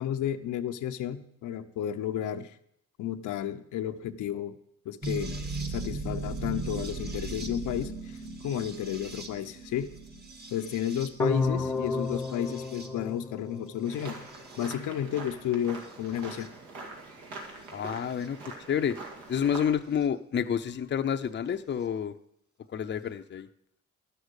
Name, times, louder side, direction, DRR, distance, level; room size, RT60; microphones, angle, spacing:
voice 1, 0.0-2.5 3.0-4.6 4.8-5.4 5.7-9.9 10.5-14.2 14.6-16.5, left 10 dB, 80° left, 7 dB, 0.8 m, -32 dB
sound 1, 5.0-13.2 13.9-14.7 15.8-16.5 18.2-18.3 20.0-20.1, right 3 dB, 35° right, 1.5 m, -39 dB
sound 2, 11.2-14.2, left 3 dB, 5° left, 0.8 m, -32 dB
sound 3, 13.8-19.7, right 3 dB, 80° right, 2.4 m, -44 dB
voice 2, 17.7-18.4 18.7-19.0 19.3-22.1 22.7-23.5, left 8 dB, 35° left, 8 dB, 0.6 m, -29 dB
11.5 x 6.6 x 8.1 m, 0.74 s
cardioid pair, 90°, 30 cm